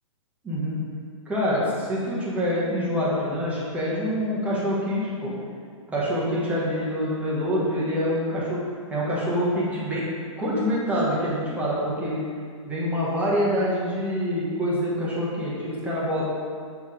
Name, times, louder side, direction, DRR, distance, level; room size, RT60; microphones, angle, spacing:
voice 1, 0.4-0.8 1.3-5.3 5.9-8.6 8.9-10.0 10.4-12.2 12.7-16.3, equal, 10° right, -7 dB, 1.2 m, -26 dB
6.5 x 3.5 x 5.0 m, 2.2 s
hypercardioid pair, 150°, 17 cm